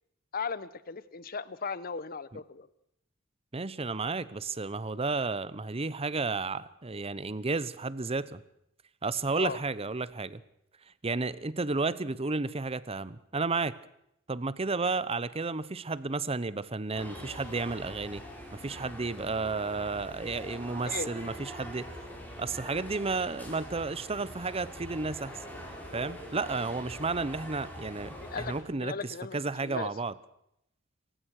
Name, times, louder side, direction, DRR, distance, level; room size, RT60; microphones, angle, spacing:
voice 1, 0.3-2.7 9.4-9.6 20.8-21.1 28.2-29.9, left 5 dB, 50° left, 17 dB, 0.8 m, -37 dB
voice 2, 3.5-8.4 9.0-10.4 11.0-13.8 14.3-18.2 18.5-21.9 22.4-25.4 25.9-30.1, right 3 dB, 30° right, 18 dB, 0.8 m, -32 dB
sound 1, 16.9-28.6, equal, 10° left, 5.4 m, -44 dB
27.5 x 15.5 x 6.5 m, 0.77 s
head